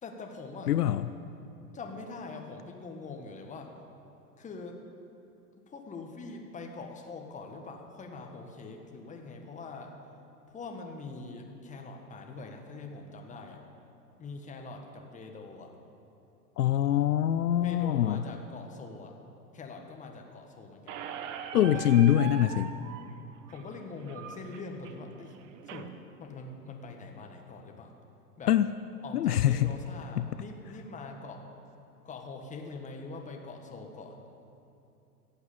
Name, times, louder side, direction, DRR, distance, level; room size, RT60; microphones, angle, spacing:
voice 1, 0.0-0.7 1.7-3.7 4.4-4.8 5.7-9.9 10.5-13.6 14.2-15.7 17.6-19.1 19.5-21.0 21.5-22.0 23.5-25.4 25.7-25.9 26.2-27.9 28.4-28.5 29.0-31.4 32.0-34.2, left 3 dB, 15° left, 3 dB, 1.6 m, -43 dB
voice 2, 0.7-1.1 16.6-18.2 21.5-22.7 28.5-28.7 29.1-29.7 30.2-30.3, left 11 dB, 70° left, 13 dB, 0.6 m, -24 dB
Squeak, 20.9-25.9, right 8 dB, 50° right, 1.1 m, -42 dB
15.0 x 8.1 x 8.6 m, 2.8 s
figure-of-eight pair, 105°, 48 cm